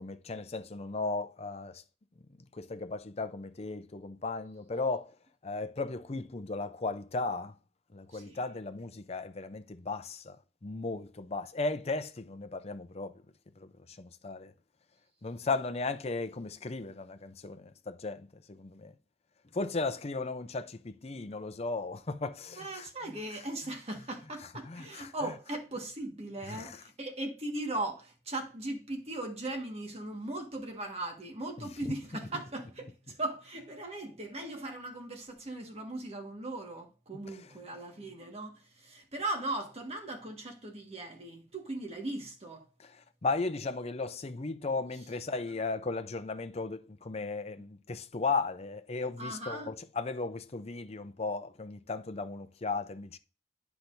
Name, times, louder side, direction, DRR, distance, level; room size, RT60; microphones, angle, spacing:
voice 1, 0.0-1.8 2.5-5.1 5.4-7.5 7.9-13.2 13.6-13.7 14.0-14.5 15.2-18.9 19.5-23.4 24.7-25.3 26.4-26.8 31.6-31.9 37.3-37.4 42.8-43.0 43.2-53.2, left 3 dB, 35° left, 0.6 m, -36 dB
voice 2, 22.6-42.7 49.2-49.7, right 2 dB, 35° right, 1.6 m, -38 dB
10.0 x 5.8 x 2.6 m
head